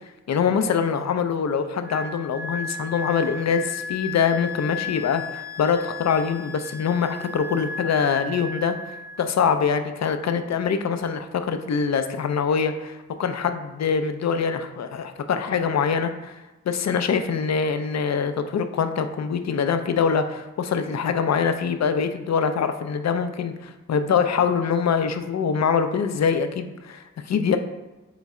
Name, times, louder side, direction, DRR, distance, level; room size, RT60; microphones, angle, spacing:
voice 1, 0.3-16.4 16.7-27.6, left 6 dB, 65° left, 8 dB, 0.5 m, -24 dB
Wind instrument woodwind instrument, 1.8-9.3, left 4 dB, 10° right, 0.5 m, -35 dB
4.0 x 3.1 x 3.6 m, 1.1 s
cardioid pair, 45°, 30 cm